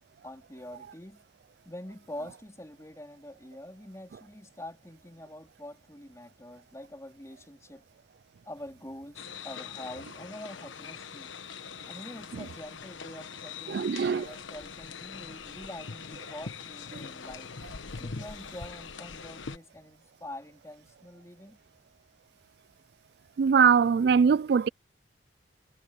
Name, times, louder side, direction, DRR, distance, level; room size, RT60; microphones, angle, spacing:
voice 1, 0.2-1.2 1.7-7.9 8.4-11.3 11.9-17.5 18.0-21.6, left 1 dB, 15° left, 3.9 m, -45 dB
sound 1, 9.1-19.6, left 5 dB, 80° left, 1.1 m, -42 dB
voice 2, 13.7-14.3 23.4-24.7, right 6 dB, 55° right, 0.3 m, -22 dB
head